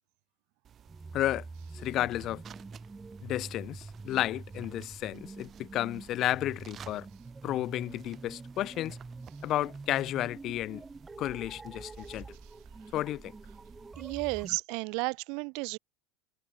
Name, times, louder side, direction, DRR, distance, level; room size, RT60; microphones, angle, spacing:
sound 1, 0.6-14.5, right 9 dB, 35° right, 2.3 m, -55 dB
sound 2, 0.9-14.6, right 3 dB, 15° right, 1.8 m, -46 dB
voice 1, 1.1-1.5 1.7-2.4 3.2-7.1 7.4-9.0 9.4-10.8 11.2-12.3 12.9-13.3, left 14 dB, 45° left, 0.3 m, -32 dB
voice 2, 14.0-15.8, right 33 dB, 60° right, 0.5 m, -33 dB
hypercardioid pair, 80°, 0 cm